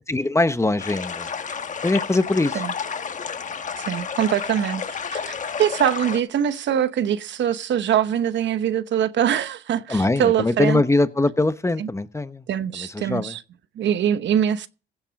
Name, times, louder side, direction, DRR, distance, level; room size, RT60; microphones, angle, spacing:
voice 1, 0.1-1.3 1.8-2.6 9.9-12.4 12.8-13.3, left 2 dB, 15° left, 0.9 m, -22 dB
sound 1, 0.8-6.2, left 6 dB, 40° left, 1.2 m, -31 dB
voice 2, 3.8-4.8 5.1-10.8 11.8-11.9 12.5-13.4 13.8-14.7, right 9 dB, 65° right, 1.0 m, -23 dB
16.0 x 7.4 x 5.2 m
cardioid pair, 90°, 20 cm